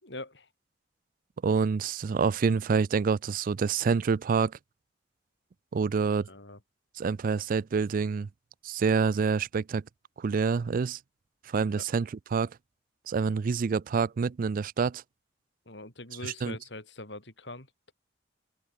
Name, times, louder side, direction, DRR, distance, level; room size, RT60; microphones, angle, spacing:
voice 1, 0.0-0.5 6.3-6.6 11.6-11.9 15.6-17.9, left 2 dB, 75° left, 6.7 m, -43 dB
voice 2, 1.4-4.5 5.7-6.3 7.0-8.3 8.6-9.8 10.2-11.0 11.5-12.5 13.1-15.0 16.4-16.6, right 5 dB, 50° right, 0.4 m, -27 dB
open air
head